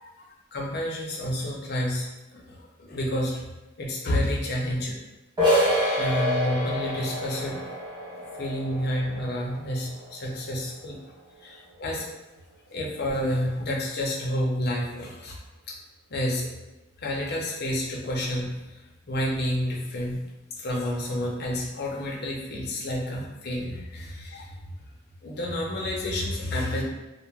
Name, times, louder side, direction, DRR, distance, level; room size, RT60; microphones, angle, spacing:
voice 1, 0.0-3.5 3.8-5.0 5.5-7.6 8.3-11.0 11.4-12.1 12.7-15.4 15.7-15.8 16.1-16.5 17.0-20.3 20.5-24.5 25.2-26.8, left 1 dB, 50° left, -2 dB, 0.5 m, -30 dB
sound 1, 5.4-10.9, equal, 20° right, 0.8 m, -28 dB
2.4 x 2.0 x 3.1 m, 1.0 s
head